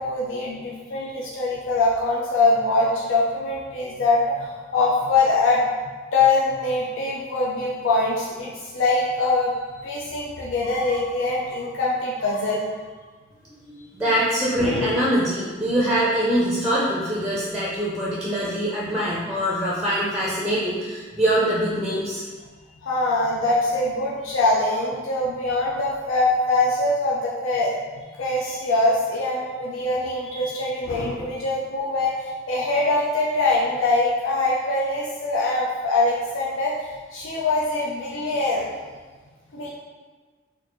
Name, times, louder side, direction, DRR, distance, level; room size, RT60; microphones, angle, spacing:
voice 1, 0.0-5.6 6.1-9.5 9.8-12.8 14.6-14.9 22.8-27.8 28.2-38.7 39.5-39.7, left 2 dB, 85° left, -4 dB, 0.5 m, -23 dB
voice 2, 13.6-22.2, equal, 5° right, -6 dB, 0.5 m, -23 dB
4.3 x 2.5 x 3.0 m, 1.4 s
head